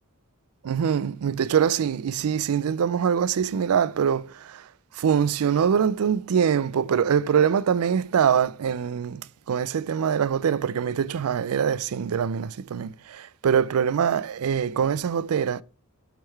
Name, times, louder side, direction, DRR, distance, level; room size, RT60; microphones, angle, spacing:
voice 1, 0.6-4.6 5.0-15.6, right 7 dB, 80° right, 0.4 m, -24 dB
8.7 x 3.7 x 4.5 m
head